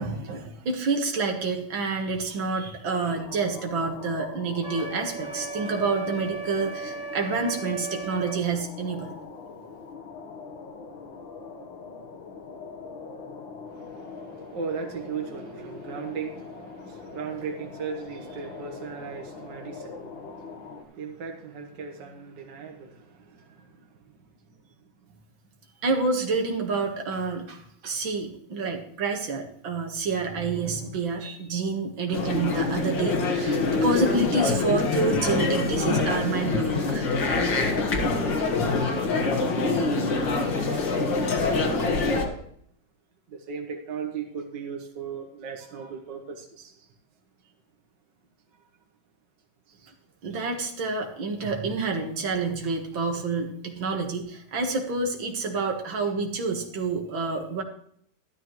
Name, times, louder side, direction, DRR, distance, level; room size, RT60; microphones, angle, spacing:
voice 1, 0.0-9.1 25.8-37.1 50.2-57.6, right 3 dB, 85° right, 2.4 m, -28 dB
sound 1, 2.9-20.8, left 4 dB, 90° left, 2.1 m, -42 dB
Wind instrument woodwind instrument, 4.6-8.4, right 3 dB, 25° right, 1.5 m, -37 dB
voice 2, 13.7-23.8 40.7-42.4 43.3-46.7 49.7-49.9, right 5 dB, 65° right, 2.0 m, -37 dB
sound 2, 32.1-42.3, left 3 dB, 70° left, 2.4 m, -25 dB
13.0 x 12.5 x 3.1 m
omnidirectional pair, 2.1 m